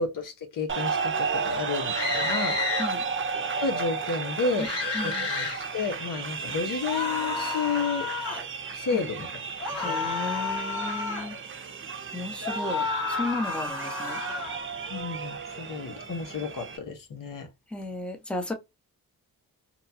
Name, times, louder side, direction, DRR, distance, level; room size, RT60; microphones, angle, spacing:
voice 1, 0.0-2.6 3.6-4.7 5.0-8.1 8.7-9.3 9.8-10.0 14.9-17.5, left 4 dB, 60° left, 0.9 m, -31 dB
sound 1, 0.7-16.8, right 5 dB, 35° right, 0.7 m, -33 dB
sound 2, 1.9-2.9 4.6-5.6 6.8-8.4 9.6-11.3 12.4-14.6, left 4 dB, 40° left, 1.5 m, -31 dB
voice 2, 4.9-5.3 8.9-9.0 9.8-11.4 12.1-14.2 17.7-18.5, left 2 dB, 5° left, 0.9 m, -34 dB
3.0 x 2.2 x 2.6 m
cardioid pair, 70°, 36 cm